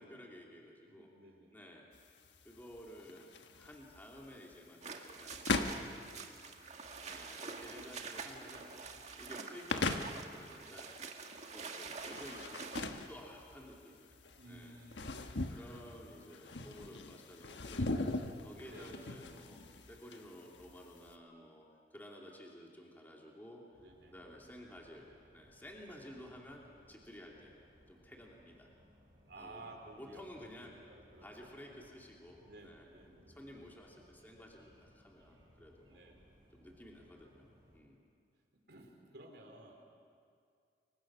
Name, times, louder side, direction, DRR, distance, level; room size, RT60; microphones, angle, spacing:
voice 1, 0.0-1.1 1.5-1.8 2.4-6.0 7.0-8.7 9.2-10.9 11.5-14.8 15.5-19.6 19.9-21.6 21.9-23.8 24.1-25.0 25.3-26.6 26.9-27.6 27.9-28.7 29.4-29.7 30.0-30.7 31.2-32.9 33.3-36.0 36.5-38.0, equal, 10° left, -2 dB, 2.8 m, -53 dB
voice 2, 0.8-1.6 6.0-6.6 14.4-15.3 18.6-19.1 23.8-24.2 29.3-31.8 32.4-33.7 35.9-36.3 38.7-39.7, right 2 dB, 65° right, 1 dB, 4.2 m, -55 dB
sound 1, 1.9-21.1, left 3 dB, 90° left, 1.3 m, -41 dB
sound 2, 4.8-12.8, right 4 dB, 40° right, 1.7 m, -47 dB
sound 3, 23.7-37.8, equal, 25° right, 7.4 m, -65 dB
29.5 x 24.0 x 6.3 m, 2.2 s
head